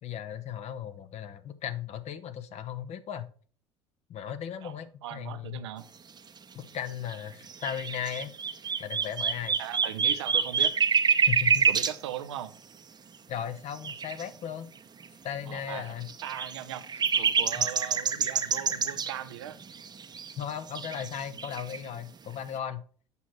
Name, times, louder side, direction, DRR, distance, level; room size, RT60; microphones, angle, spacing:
voice 1, 0.0-3.3 4.1-5.6 6.5-8.3 8.8-9.6 11.3-11.7 13.3-14.7 15.2-16.1 17.6-17.7 20.4-22.8, left 9 dB, 50° left, 11 dB, 0.9 m, -36 dB
voice 2, 5.0-5.8 9.6-10.7 11.7-12.5 15.5-15.9 16.2-19.6, right 11 dB, 75° right, 11 dB, 0.7 m, -39 dB
sound 1, 7.1-7.2 7.5-11.9 13.8-14.2 15.0-15.1 15.5-15.6 16.0-19.1 19.6-20.4 20.7-21.8, right 6 dB, 30° right, 0.8 m, -26 dB
8.2 x 6.2 x 3.1 m, 0.43 s
hypercardioid pair, 65°, 15 cm